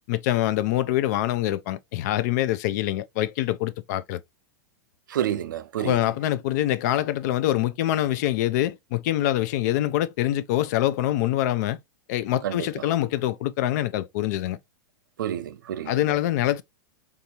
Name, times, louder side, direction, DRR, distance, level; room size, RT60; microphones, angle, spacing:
voice 1, 0.1-4.2 5.8-11.8 12.1-14.6 15.9-16.6, left 14 dB, 60° left, 0.4 m, -25 dB
voice 2, 5.1-6.0 12.4-12.8 15.2-16.1, right 10 dB, 85° right, 0.4 m, -29 dB
3.5 x 2.6 x 2.8 m
hypercardioid pair, 120°, 10 cm